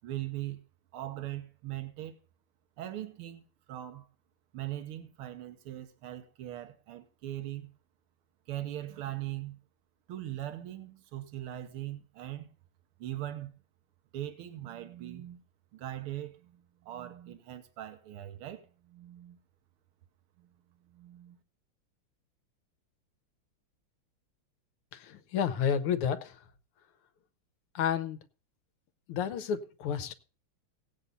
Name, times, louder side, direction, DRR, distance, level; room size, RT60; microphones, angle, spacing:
voice 1, 0.0-0.6 0.9-2.2 2.8-4.1 4.5-7.7 8.5-9.6 10.1-12.5 13.0-13.5 14.1-15.4 15.7-19.4 20.4-20.5 20.8-21.4, right 13 dB, 85° right, 1.9 m, -40 dB
voice 2, 24.9-26.4 27.8-28.2 29.1-30.1, left 8 dB, 90° left, 1.8 m, -31 dB
16.5 x 8.7 x 4.1 m
omnidirectional pair, 2.3 m